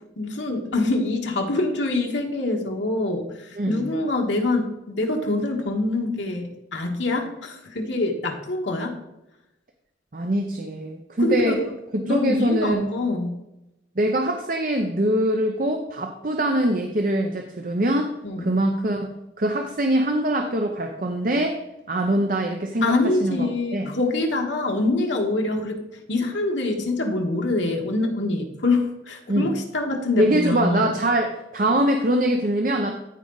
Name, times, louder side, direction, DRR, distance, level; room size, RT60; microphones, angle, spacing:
voice 1, 0.2-8.9 11.2-11.7 12.0-13.3 18.2-18.6 22.8-31.0, left 2 dB, 80° left, 2 dB, 1.6 m, -25 dB
voice 2, 3.5-3.9 10.1-11.6 11.9-12.8 14.0-18.1 18.4-21.6 21.9-22.9 23.2-24.0 29.3-29.5 30.2-33.0, right 1 dB, 45° right, 4 dB, 0.7 m, -23 dB
14.0 x 4.9 x 3.9 m, 0.92 s
head